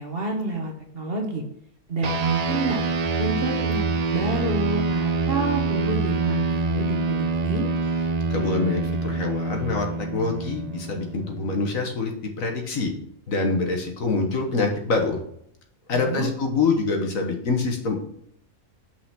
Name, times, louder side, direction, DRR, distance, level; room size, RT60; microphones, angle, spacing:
voice 1, 0.0-1.4 1.9-2.8 3.2-7.6 15.9-16.3, right 2 dB, 45° right, 2 dB, 1.3 m, -28 dB
sound 1, 2.0-11.8, right 4 dB, 70° right, 0.3 m, -26 dB
voice 2, 8.3-9.9 10.1-12.1 12.4-12.9 13.3-15.2 15.9-18.0, left 4 dB, 65° left, 3 dB, 1.6 m, -25 dB
6.0 x 4.9 x 5.6 m, 0.70 s
omnidirectional pair, 1.5 m